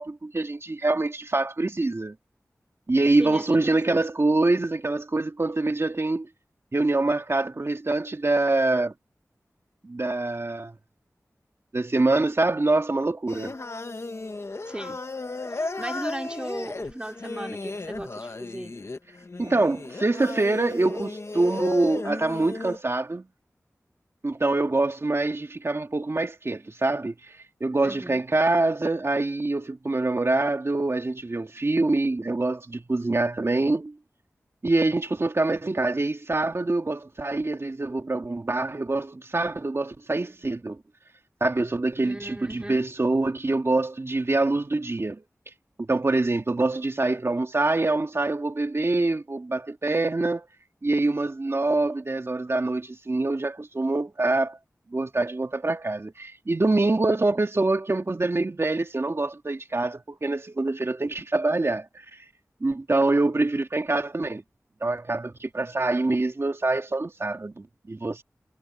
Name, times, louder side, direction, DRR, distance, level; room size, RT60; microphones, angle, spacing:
voice 1, 0.0-2.2 2.9-6.3 6.7-8.9 9.8-10.7 11.7-13.6 19.4-23.3 24.2-33.9 34.6-40.8 41.4-45.2 45.8-50.5 50.8-54.6 54.9-62.2 62.6-64.4 64.8-68.2, right 2 dB, 50° right, 2.1 m, -25 dB
voice 2, 3.2-4.0 14.6-15.0 15.5-18.7 27.8-28.2 42.0-42.8, right 1 dB, 15° right, 2.6 m, -37 dB
Singing, 13.3-22.8, left 3 dB, 50° left, 1.2 m, -35 dB
cardioid pair, 45°, 6 cm